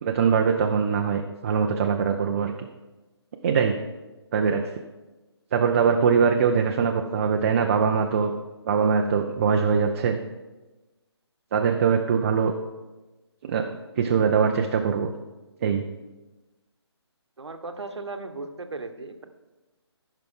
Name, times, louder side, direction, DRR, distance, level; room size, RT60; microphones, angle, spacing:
voice 1, 0.0-2.7 3.4-3.8 4.3-4.7 5.5-8.3 8.7-10.2 11.5-12.5 13.4-13.7 14.0-15.1 15.6-15.8, right 6 dB, 30° right, 3 dB, 0.6 m, -22 dB
voice 2, 17.4-19.3, right 3 dB, 75° right, 7 dB, 1.1 m, -36 dB
15.0 x 5.8 x 3.8 m, 1.1 s
figure-of-eight pair, 150°, 14 cm